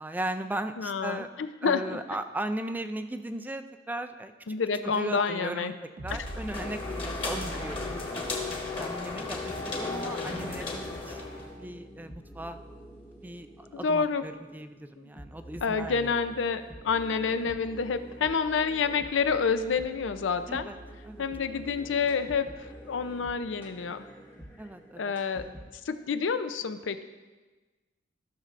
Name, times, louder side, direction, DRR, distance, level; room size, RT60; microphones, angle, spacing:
voice 1, 0.0-1.3 1.6-4.6 4.8-8.0 8.8-11.2 11.5-12.6 13.2-16.1 20.5-20.8 21.0-21.3 21.6-21.9 24.6-25.1 25.4-25.6, right 1 dB, 10° right, 8 dB, 0.3 m, -37 dB
voice 2, 0.8-1.8 4.5-5.7 13.7-14.2 15.0-15.1 15.6-20.7 21.2-24.0 25.0-25.4 25.8-27.0, left 5 dB, 75° left, 10 dB, 0.5 m, -28 dB
sound 1, 6.0-9.4, right 1 dB, 50° right, 0.7 m, -42 dB
sound 2, 6.1-11.6, left 3 dB, 30° left, 1.4 m, -35 dB
sound 3, 9.3-26.0, equal, 10° left, 0.9 m, -48 dB
14.5 x 6.5 x 2.5 m, 1.3 s
head